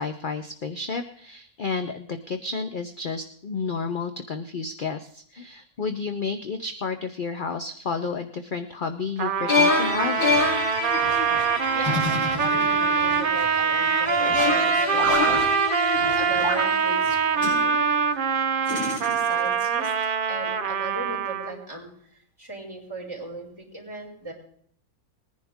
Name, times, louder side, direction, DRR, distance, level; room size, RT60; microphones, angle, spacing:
voice 1, 0.0-10.3, left 4 dB, 45° left, 8 dB, 0.7 m, -31 dB
Trumpet, 9.2-21.6, right 6 dB, 50° right, 0.7 m, -24 dB
sound 1, 9.5-17.7, left 3 dB, 90° left, 5.0 m, -27 dB
voice 2, 11.7-15.4 16.1-17.9 18.7-19.9 20.3-21.9 22.4-24.3, right 2 dB, 15° right, -4 dB, 5.1 m, -38 dB
sound 2, 11.8-13.0 14.9-15.4 16.4-16.7 17.4-17.6 18.7-19.5, equal, 75° left, 7.0 m, -30 dB
20.5 x 10.5 x 3.6 m, 0.62 s
omnidirectional pair, 1.7 m